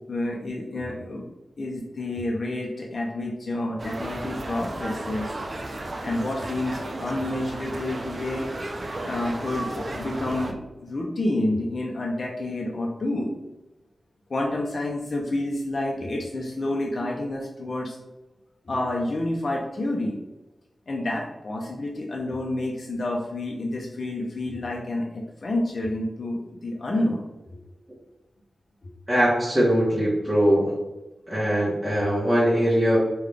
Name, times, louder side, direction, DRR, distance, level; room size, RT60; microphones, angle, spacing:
voice 1, 0.1-1.2 1.6-5.3 6.0-8.5 9.0-13.3 14.3-18.0 18.7-20.2 20.9-27.2 28.8-28.9, left 1 dB, 55° left, -2 dB, 0.5 m, -29 dB
sound 1, 3.8-10.5, right 1 dB, 50° right, 0.5 m, -34 dB
voice 2, 29.1-30.8 31.3-33.0, equal, 10° right, -8 dB, 1.1 m, -21 dB
3.7 x 2.3 x 3.3 m, 1.0 s
wide cardioid pair, 75°, 0 cm